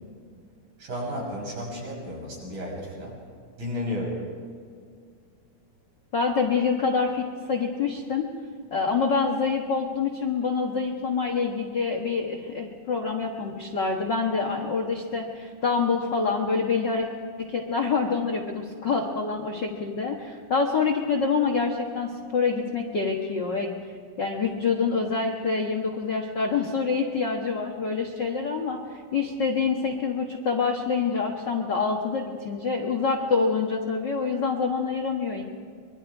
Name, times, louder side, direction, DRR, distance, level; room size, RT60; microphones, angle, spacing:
voice 1, 0.8-3.2 3.6-4.3, left 1 dB, 55° right, -3 dB, 7.6 m, -33 dB
voice 2, 6.1-8.3 8.7-17.1 17.4-23.7 24.2-28.8 29.1-35.4, left 5 dB, 50° left, 1 dB, 1.3 m, -26 dB
25.0 x 22.0 x 4.8 m, 2.1 s
omnidirectional pair, 4.0 m